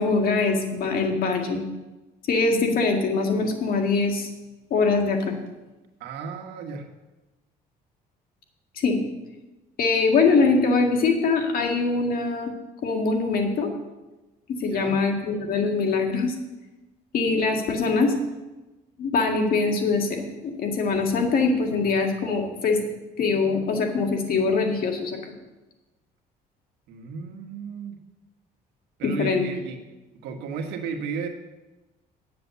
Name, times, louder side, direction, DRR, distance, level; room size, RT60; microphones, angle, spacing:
voice 1, 0.0-1.6 2.3-4.3 4.7-5.4 8.8-9.0 9.8-12.5 12.8-13.7 14.5-16.4 17.1-18.1 19.0-22.8 23.2-25.3 29.0-29.4, left 4 dB, 60° left, 3 dB, 1.9 m, -23 dB
voice 2, 6.0-6.9 14.7-15.0 26.9-28.0 29.0-29.8 30.2-31.3, right 5 dB, 85° right, 4 dB, 1.5 m, -34 dB
9.3 x 7.7 x 6.9 m, 1.1 s
cardioid pair, 110°, 17 cm